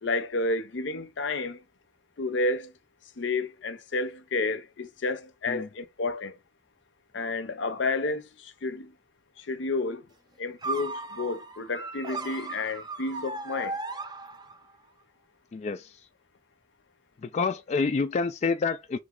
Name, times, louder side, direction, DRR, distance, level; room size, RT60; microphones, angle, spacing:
voice 1, 0.0-1.6 2.2-2.7 3.2-6.3 7.1-8.9 9.4-10.1 10.4-13.8, left 3 dB, 70° left, 0.6 m, -31 dB
sound 1, 10.6-14.8, right 3 dB, 20° right, 0.6 m, -36 dB
voice 2, 15.5-16.0 17.2-19.0, left 4 dB, 35° left, 0.3 m, -28 dB
3.8 x 3.1 x 3.7 m
head